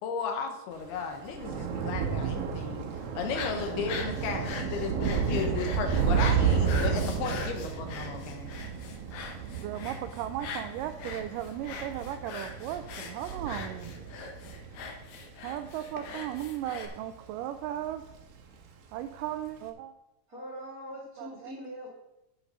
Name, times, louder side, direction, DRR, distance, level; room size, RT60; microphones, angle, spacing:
voice 1, 0.0-2.9 3.1-8.5, left 5 dB, 85° left, 5 dB, 3.2 m, -35 dB
Thunder / Rain, 0.8-17.4 17.7-18.2 18.5-18.6, right 6 dB, 70° right, 2.7 m, -32 dB
sound 1, 3.2-16.9, left 5 dB, 65° left, 2.1 m, -42 dB
voice 2, 9.6-14.0 15.4-18.0 18.9-19.9 21.2-21.5, right 11 dB, 90° right, 9 dB, 1.9 m, -36 dB
voice 3, 20.3-21.9, equal, 30° right, -3 dB, 1.8 m, -42 dB
9.1 x 8.0 x 5.3 m, 0.91 s
omnidirectional pair, 4.4 m